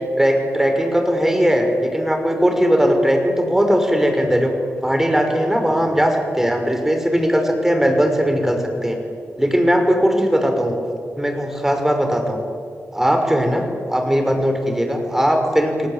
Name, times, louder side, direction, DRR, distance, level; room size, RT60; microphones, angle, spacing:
voice 1, 0.0-4.5 4.8-9.0 9.4-10.8 11.2-12.4 12.9-15.9, equal, 10° right, 4 dB, 5.9 m, -19 dB
28.5 x 18.5 x 9.1 m, 2.2 s
cardioid pair, 65°, 5 cm